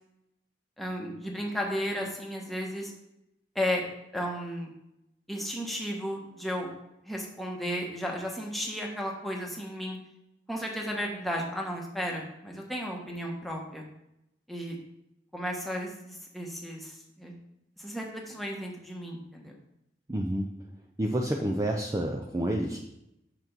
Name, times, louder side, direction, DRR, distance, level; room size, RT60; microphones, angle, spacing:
voice 1, 0.8-2.9 3.5-3.8 4.1-4.7 5.3-6.7 7.0-10.0 10.5-13.8 14.5-14.7 15.3-17.3 17.8-19.5, equal, ahead, -1 dB, 1.3 m, -34 dB
voice 2, 20.1-20.5 21.0-22.8, right 1 dB, 20° right, 1 dB, 0.5 m, -29 dB
6.7 x 6.2 x 4.5 m, 0.83 s
head